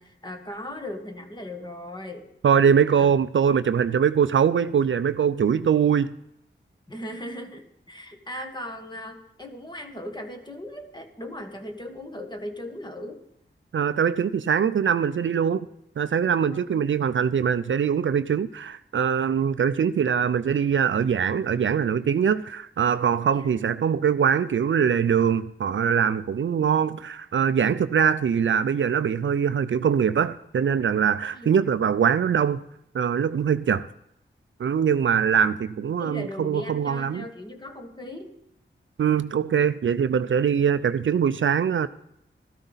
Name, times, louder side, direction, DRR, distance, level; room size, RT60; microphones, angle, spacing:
voice 1, 0.0-2.3 2.9-3.1 6.9-13.2 16.5-16.8 23.3-23.5 31.3-31.6 35.4-35.5 36.0-38.3, left 1 dB, 20° left, 1.5 m, -38 dB
voice 2, 2.4-6.1 13.7-15.7 16.0-32.6 32.9-33.9 34.6-37.2 39.0-41.9, right 7 dB, 70° right, 0.4 m, -22 dB
13.5 x 13.0 x 4.0 m
wide cardioid pair, 70°, 21 cm